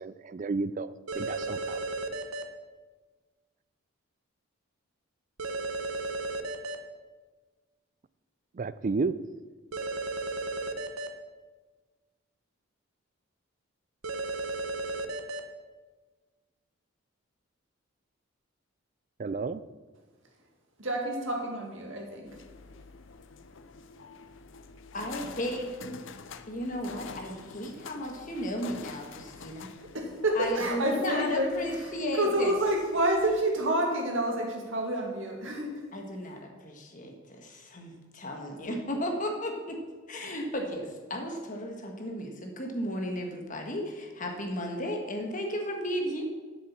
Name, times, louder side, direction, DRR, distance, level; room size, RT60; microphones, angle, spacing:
voice 1, 0.0-1.9 8.5-9.1 19.2-19.6, right 4 dB, 40° right, 16 dB, 0.3 m, -32 dB
sound 1, 1.1-2.4 5.4-6.8 9.7-11.1 14.0-15.4, right 2 dB, 85° right, 0.9 m, -34 dB
voice 2, 20.8-22.4 29.3-29.4 29.9-35.8, right 1 dB, 65° right, 0 dB, 2.2 m, -29 dB
sound 2, 22.3-33.4, left 4 dB, 65° left, 0.6 m, -47 dB
voice 3, 24.9-26.0 26.5-29.7 30.3-32.5 35.9-39.8 40.1-46.2, equal, 40° left, 3 dB, 1.5 m, -34 dB
7.8 x 7.5 x 7.3 m, 1.4 s
head